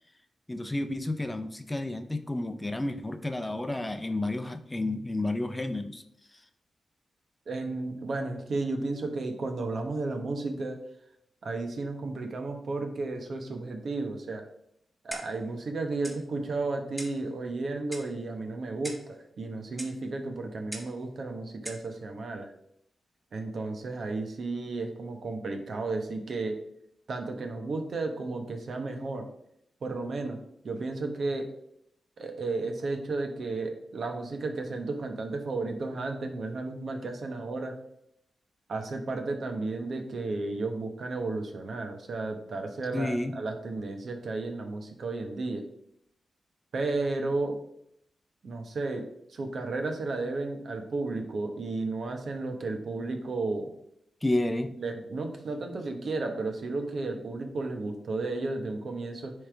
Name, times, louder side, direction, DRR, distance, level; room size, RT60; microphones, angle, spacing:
voice 1, 0.5-6.0 42.9-43.3 54.2-54.7, left 2 dB, 15° left, 8 dB, 0.6 m, -31 dB
voice 2, 7.5-10.8 11.4-14.4 15.0-22.5 23.3-26.6 27.1-29.2 29.8-30.4 30.6-31.5 32.2-37.8 38.7-45.7 46.7-47.6 48.4-49.0 49.3-53.7 54.8-59.3, right 3 dB, 65° right, 4 dB, 1.1 m, -33 dB
Clock, 15.1-15.5 16.0-16.2 17.0-17.2 17.9-18.2 18.8-19.1 19.8-20.0 20.7-21.0 21.6-21.9, equal, 10° right, 1.4 m, -41 dB
9.6 x 3.3 x 3.4 m, 0.74 s
cardioid pair, 75°, 0 cm